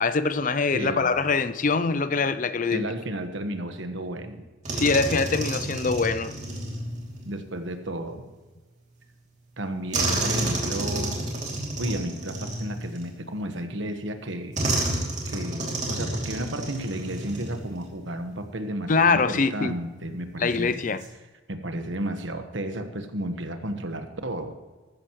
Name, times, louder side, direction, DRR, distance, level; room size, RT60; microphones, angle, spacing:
voice 1, 0.0-2.9 4.7-6.4 18.9-19.7 20.4-21.0, left 4 dB, 40° left, 0.5 m, -23 dB
voice 2, 0.7-1.1 2.7-4.4 7.2-8.3 9.6-11.2 11.8-20.8 21.5-24.5, right 1 dB, 65° right, 1.3 m, -33 dB
sound 1, 4.6-7.3 9.9-13.4 14.5-17.9 18.2-18.4 20.7-21.1, right 2 dB, 35° right, 2.8 m, -30 dB
14.5 x 13.5 x 3.1 m
head